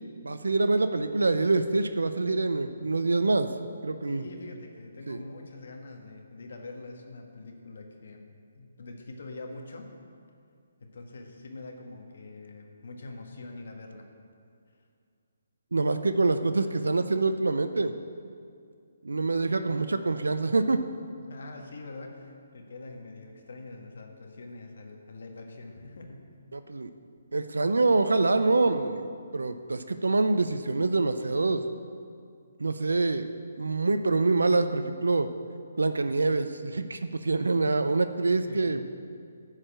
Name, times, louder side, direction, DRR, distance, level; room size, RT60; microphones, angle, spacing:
voice 1, 0.2-3.5 3.8-4.2 5.1-5.2 15.7-17.9 19.0-20.8 26.5-26.9 27.3-31.6 32.6-33.3 33.6-35.3 35.8-38.8, right 3 dB, 85° right, 10 dB, 0.5 m, -25 dB
voice 2, 4.0-9.9 10.8-14.1 19.5-19.6 21.2-26.3 38.3-38.8, left 2 dB, 65° left, 2 dB, 1.5 m, -44 dB
11.0 x 4.9 x 7.5 m, 2.3 s
hypercardioid pair, 150°, 0 cm